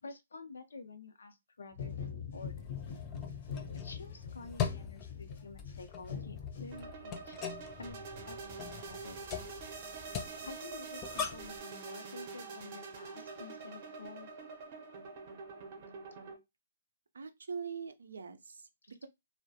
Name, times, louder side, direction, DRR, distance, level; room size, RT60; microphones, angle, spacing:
voice 1, 0.0-2.5 3.7-7.4 7.8-9.2 10.4-14.3 18.8-18.9, left 3 dB, 85° left, 0.5 m, -50 dB
sound 1, 1.7-7.3, left 7 dB, 50° left, 0.8 m, -43 dB
sound 2, 2.5-11.6, left 7 dB, 20° left, 0.4 m, -42 dB
sound 3, 6.7-16.4, right 4 dB, 40° right, 0.6 m, -46 dB
voice 2, 17.1-19.1, right 6 dB, 80° right, 0.4 m, -43 dB
2.2 x 2.0 x 2.7 m
hypercardioid pair, 145°, 0 cm